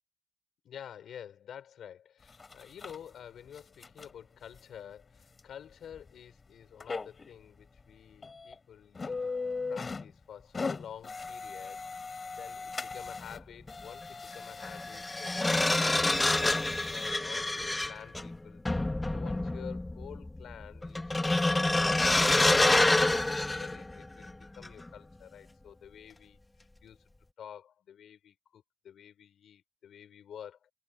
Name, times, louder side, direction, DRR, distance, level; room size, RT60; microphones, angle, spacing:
voice 1, 0.6-9.3 9.7-11.8 12.3-18.6 19.1-23.3 23.6-26.4 26.8-27.0 27.4-30.7, left 9 dB, 75° left, 5.9 m, -49 dB
sound 1, 2.3-3.0 3.5-4.1 4.5-4.6 5.4-5.5 5.9-6.1 6.8-7.3 7.8-7.9 8.2-8.5 8.9-10.1 10.4-13.4 13.7-17.1 17.8-17.9 18.3-18.4, left 4 dB, 35° left, 6.8 m, -39 dB
sound 2, 13.2-13.4 14.6-24.3 24.6-24.9, left 2 dB, 15° left, 1.8 m, -27 dB
cardioid pair, 75°, 0 cm